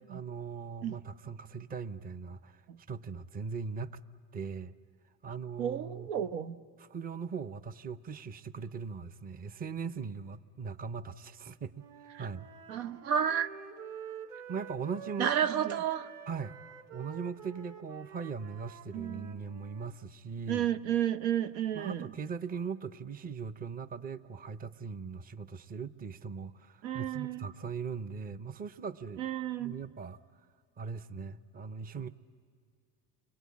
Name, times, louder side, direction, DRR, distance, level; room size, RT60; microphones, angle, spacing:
voice 1, 0.0-2.6 2.9-4.0 4.3-4.8 5.2-6.3 6.8-11.8 12.2-12.5 14.5-15.3 15.5-15.8 16.3-16.6 16.9-20.7 21.7-29.3 29.6-30.2 30.8-32.1, right 5 dB, 20° right, 0.6 m, -40 dB
voice 2, 5.6-6.6 12.7-13.5 15.2-16.1 18.9-19.3 20.5-22.1 26.8-27.5 29.2-29.8, right 9 dB, 90° right, 1.0 m, -31 dB
Wind instrument woodwind instrument, 11.7-19.9, right 8 dB, 50° right, 3.2 m, -48 dB
29.0 x 22.0 x 8.5 m
supercardioid pair, 120°, 41 cm